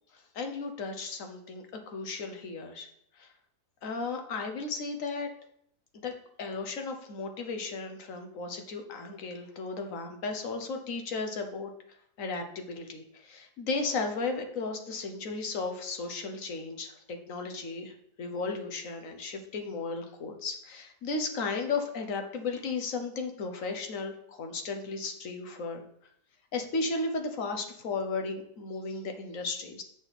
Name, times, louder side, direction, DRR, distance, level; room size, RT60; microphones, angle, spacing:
voice 1, 0.3-2.9 3.2-3.3 3.8-5.3 5.9-6.1 6.4-11.7 12.2-25.8 26.5-29.8, left 4 dB, 55° left, 5 dB, 1.3 m, -35 dB
7.9 x 6.2 x 4.2 m, 0.70 s
omnidirectional pair, 1.8 m